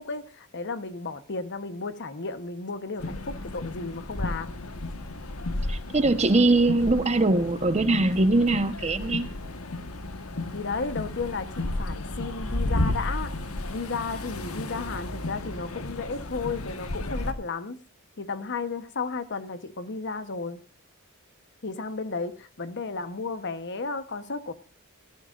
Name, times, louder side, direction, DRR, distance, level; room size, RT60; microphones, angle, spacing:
voice 1, 0.0-4.6 10.5-13.3 13.7-17.8 18.2-20.6 21.6-24.5, left 4 dB, 55° left, 1.1 m, -33 dB
sound 1, 3.0-17.3, left 2 dB, 85° left, 1.4 m, -33 dB
voice 2, 5.7-9.3, right 2 dB, 30° right, 1.1 m, -22 dB
18.0 x 13.5 x 2.5 m
head